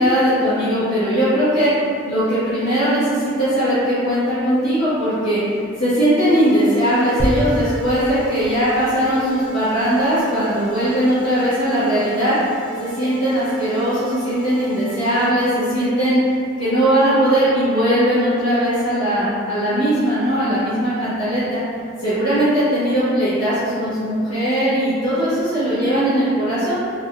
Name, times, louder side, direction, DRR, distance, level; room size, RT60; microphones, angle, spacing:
voice 1, 0.0-1.7 2.0-5.4 5.8-12.3 12.8-16.2 16.6-21.6 22.0-26.8, equal, 90° left, -16 dB, 1.1 m, -19 dB
sound 1, 6.3-15.3, right 2 dB, 45° right, 0.9 m, -36 dB
sound 2, 7.2-10.8 11.4-11.5, equal, 10° right, 0.5 m, -28 dB
3.4 x 2.5 x 2.2 m, 2.4 s
head